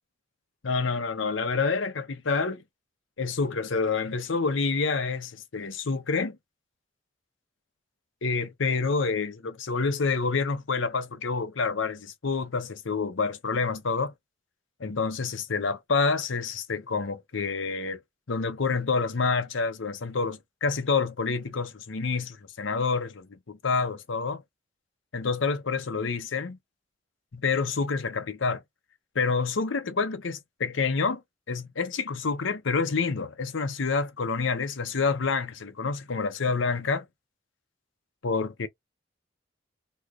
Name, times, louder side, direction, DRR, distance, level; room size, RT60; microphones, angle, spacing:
voice 1, 0.6-2.6 3.2-6.4 8.2-14.1 14.8-18.0 18.3-24.4 25.1-26.6 27.3-28.6 29.1-31.2 31.5-37.0 38.2-38.7, left 4 dB, 75° left, 0.7 m, -28 dB
3.1 x 2.4 x 3.5 m
head